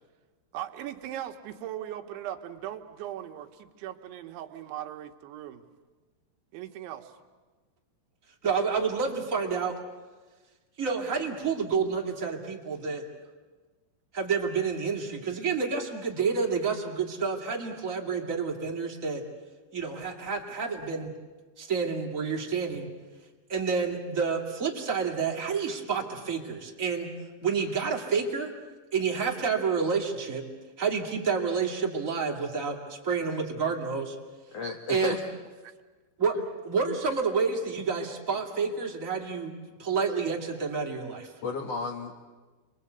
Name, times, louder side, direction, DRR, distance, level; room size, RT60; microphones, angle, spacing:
voice 1, 0.5-5.7 6.5-7.1 35.6-35.7, right 11 dB, 90° right, 5 dB, 3.6 m, -39 dB
voice 2, 8.4-9.8 10.8-13.0 14.1-19.2 19.7-21.1 21.6-22.9 23.5-27.1 27.4-28.5 28.9-30.4 30.8-34.2 34.9-35.2 36.2-39.5 39.8-41.3, right 5 dB, 25° right, 0 dB, 2.0 m, -29 dB
voice 3, 34.5-35.2 36.3-36.4 41.4-42.2, left 4 dB, 80° left, 4 dB, 1.4 m, -33 dB
29.0 x 23.0 x 8.2 m, 1.3 s
omnidirectional pair, 5.3 m